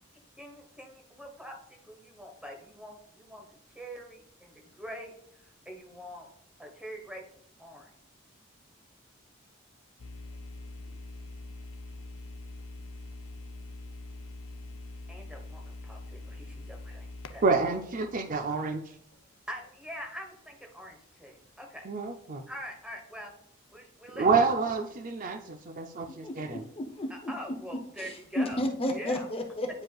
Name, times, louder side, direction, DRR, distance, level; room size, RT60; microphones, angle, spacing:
voice 1, 0.4-6.3 6.6-7.9 15.1-17.4 19.5-21.9 22.5-23.3 23.7-24.3 27.1-29.3, equal, 5° right, 2 dB, 1.2 m, -44 dB
sound 1, 10.0-18.9, left 2 dB, 85° left, 0.6 m, -44 dB
voice 2, 17.4-18.8 21.9-22.4 24.2-26.6, right 4 dB, 40° right, 7 dB, 0.5 m, -28 dB
voice 3, 26.0-27.3 28.0-29.8, left 1 dB, 30° left, 4 dB, 0.7 m, -33 dB
9.4 x 5.1 x 2.4 m, 0.72 s
head